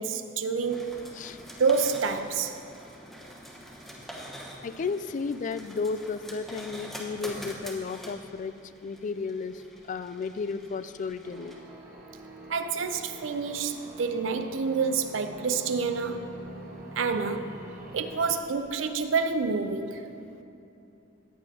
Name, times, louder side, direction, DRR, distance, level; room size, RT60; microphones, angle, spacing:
voice 1, 0.0-1.0 1.6-2.6 12.5-16.4 17.0-17.6 17.9-20.0, right 5 dB, 80° right, 0.5 m, -28 dB
sound 1, 0.6-19.5, equal, ahead, 1.1 m, -47 dB
voice 2, 4.6-11.6, left 4 dB, 40° left, 0.3 m, -33 dB
sound 2, 11.2-18.4, right 1 dB, 50° right, 1.1 m, -45 dB
14.0 x 9.1 x 2.8 m
head